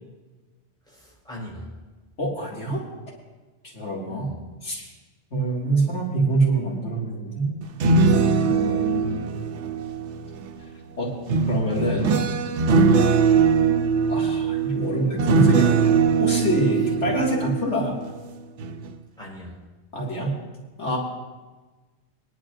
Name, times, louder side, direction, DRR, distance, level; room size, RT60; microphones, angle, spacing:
voice 1, 0.9-1.7 4.1-4.3 17.0-17.3 19.2-19.6, right 1 dB, 5° left, -5 dB, 4.5 m, -39 dB
voice 2, 2.2-2.8 3.7-4.3 4.6-4.9 5.3-7.6 8.4-9.3 11.0-11.1 11.5-12.2 14.1-17.9 19.9-20.4 20.8-21.0, right 2 dB, 80° left, -4 dB, 2.5 m, -25 dB
sound 1, 7.6-10.5 11.3-18.2 18.6-18.9, right 5 dB, 90° right, 1.0 m, -21 dB
22.5 x 10.5 x 2.5 m, 1.2 s
omnidirectional pair, 1.2 m